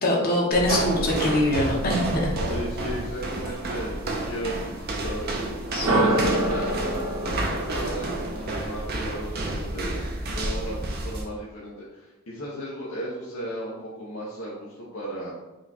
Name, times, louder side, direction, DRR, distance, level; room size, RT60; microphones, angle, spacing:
voice 1, 0.0-2.3 5.7-5.8, left 1 dB, 40° left, -3 dB, 1.1 m, -23 dB
Go down an old woodn spiral staircase (fast), 0.5-11.3, right 2 dB, 45° right, 0.6 m, -30 dB
voice 2, 2.5-4.6 5.0-5.3 5.8-10.0 10.3-15.3, equal, 70° left, -6 dB, 0.9 m, -35 dB
sound 1, 5.7-9.6, right 1 dB, 70° right, 1.0 m, -27 dB
4.9 x 2.3 x 4.1 m, 1.0 s
head